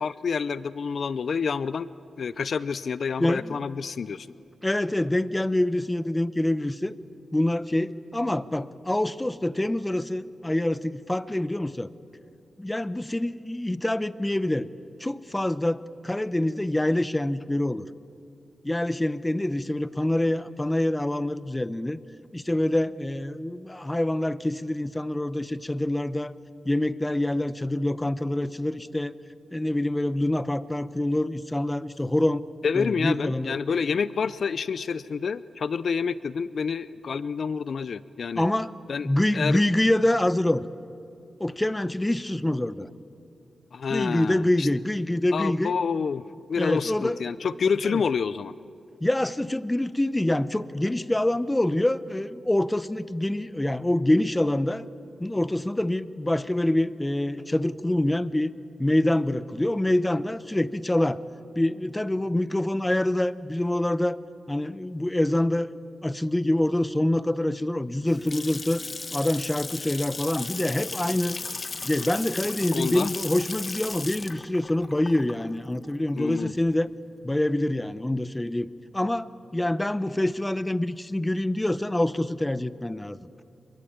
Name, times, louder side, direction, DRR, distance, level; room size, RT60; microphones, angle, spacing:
voice 1, 0.0-1.9 2.2-4.3 32.6-38.5 38.9-39.6 43.7-44.7 45.3-46.2 46.5-48.5 72.7-73.1 76.2-76.5, left 6 dB, 65° left, 17 dB, 0.6 m, -28 dB
voice 2, 3.2-3.6 4.6-6.9 7.3-11.9 12.6-14.7 15.0-17.9 18.6-22.0 22.3-26.3 26.6-29.1 29.5-32.4 32.7-33.6 38.3-38.7 39.0-40.7 41.4-42.9 43.9-45.7 46.6-47.2 47.8-48.0 49.0-54.9 55.2-58.5 58.8-61.2 61.5-64.2 64.5-65.7 66.0-68.8 69.1-71.4 71.8-76.9 77.2-78.7 78.9-83.2, left 1 dB, 15° left, 15 dB, 0.9 m, -26 dB
Water tap faucet / Sink (filling or washing) / Splash splatter, 67.8-76.7, left 3 dB, 40° left, 1.4 m, -36 dB
27.0 x 22.5 x 8.8 m, 2.5 s
cardioid pair, 70°, 0 cm